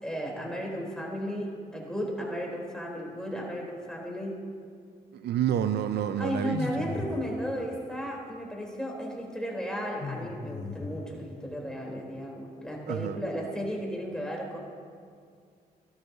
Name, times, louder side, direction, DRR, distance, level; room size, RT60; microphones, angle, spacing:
voice 1, 0.0-4.4 6.2-14.6, equal, 5° left, -2 dB, 3.6 m, -34 dB
voice 2, 5.1-6.9 12.9-13.2, right 9 dB, 70° right, 11 dB, 0.5 m, -29 dB
sound 1, 6.5-7.4 10.0-11.2, left 3 dB, 40° left, 1.1 m, -37 dB
16.0 x 12.5 x 2.8 m, 2.2 s
supercardioid pair, 50°, 18 cm